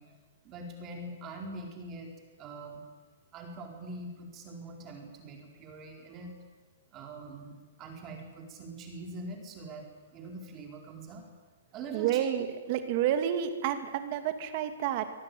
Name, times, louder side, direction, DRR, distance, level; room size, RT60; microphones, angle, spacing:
voice 1, 0.0-2.8 3.3-6.3 6.9-11.2 11.7-12.3, right 2 dB, 20° right, 2 dB, 4.4 m, -43 dB
voice 2, 11.9-15.1, right 10 dB, 35° right, 8 dB, 2.5 m, -30 dB
25.0 x 17.5 x 9.5 m, 1.3 s
hypercardioid pair, 165°, 0 cm